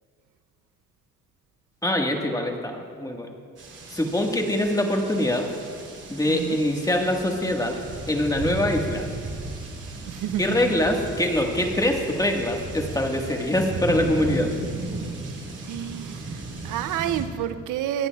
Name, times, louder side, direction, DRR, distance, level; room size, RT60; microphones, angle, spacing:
voice 1, 1.8-3.3 3.9-5.5 6.1-7.8 8.1-9.1 10.4-14.5, left 1 dB, 10° left, 2 dB, 1.5 m, -24 dB
sound 1, 3.6-17.2, right 3 dB, 50° right, 3.4 m, -35 dB
voice 2, 6.3-6.6 10.1-10.6 15.6-18.1, right 11 dB, 85° right, 12 dB, 0.6 m, -29 dB
26.0 x 9.7 x 2.3 m, 2.1 s
cardioid pair, 90°, 30 cm